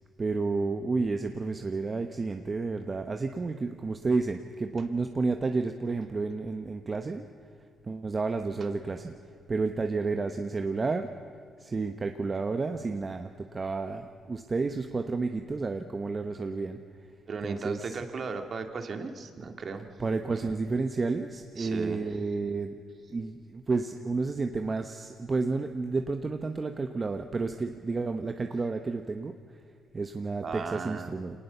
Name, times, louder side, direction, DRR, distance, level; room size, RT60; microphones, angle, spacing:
voice 1, 0.2-7.3 7.8-9.1 9.5-11.1 11.6-16.8 17.4-18.0 20.0-22.8 23.1-29.6 29.9-31.4, right 3 dB, 30° right, 6 dB, 1.0 m, -31 dB
voice 2, 17.3-19.9 20.3-20.5 21.6-22.0 30.4-31.1, right 4 dB, 45° right, 6 dB, 2.1 m, -36 dB
25.0 x 19.0 x 6.9 m, 2.3 s
cardioid pair, 90°, 0 cm